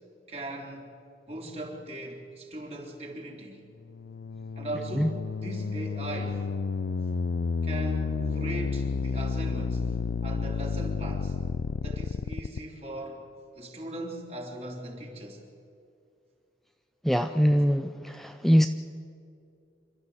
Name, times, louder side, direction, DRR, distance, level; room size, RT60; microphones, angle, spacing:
voice 1, 0.3-0.9 1.3-3.6 4.6-6.5 7.6-9.9 10.2-11.4 11.8-13.2 13.6-15.4, right 1 dB, 35° right, 0 dB, 3.5 m, -39 dB
sound 1, 3.8-12.6, left 4 dB, 80° left, 0.5 m, -31 dB
voice 2, 17.0-18.7, equal, ahead, 7 dB, 0.5 m, -23 dB
27.0 x 13.0 x 8.1 m, 2.5 s
head